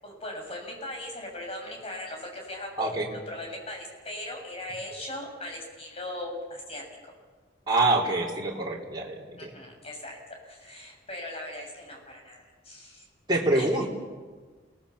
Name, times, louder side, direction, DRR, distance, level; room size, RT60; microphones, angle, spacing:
voice 1, 0.0-2.9 3.3-6.8 9.4-10.2 10.4-13.1 13.5-13.9, left 1 dB, 30° left, 1 dB, 7.4 m, -39 dB
voice 2, 7.7-9.5 13.3-13.9, right 2 dB, 20° right, -3 dB, 4.0 m, -26 dB
29.0 x 19.5 x 7.2 m, 1.4 s
head